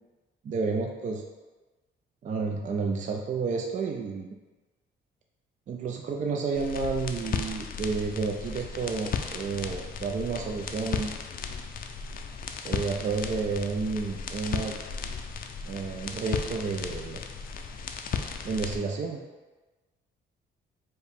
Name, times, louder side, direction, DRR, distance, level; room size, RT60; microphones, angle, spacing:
voice 1, 0.4-1.2 2.2-4.3 5.7-11.1 12.6-14.7 15.6-17.2 18.4-19.2, right 4 dB, 40° right, 1 dB, 0.4 m, -30 dB
sound 1, 6.5-18.8, left 6 dB, 50° left, 0.4 m, -35 dB
4.6 x 2.1 x 3.4 m, 1.2 s
cardioid pair, 90°, 20 cm